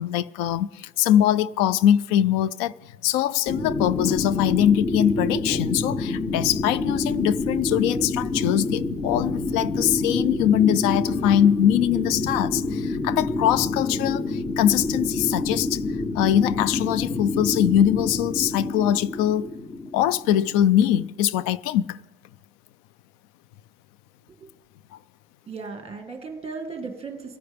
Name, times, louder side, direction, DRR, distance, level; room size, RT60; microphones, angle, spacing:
voice 1, 0.0-2.7 3.0-15.8 16.1-19.5 19.9-22.0, left 11 dB, 90° left, 0.5 m, -22 dB
sound 1, 3.5-21.1, left 2 dB, 20° left, 0.5 m, -28 dB
voice 2, 25.5-27.4, right 4 dB, 20° right, 1.6 m, -36 dB
23.5 x 9.3 x 3.4 m
cardioid pair, 145°, 31 cm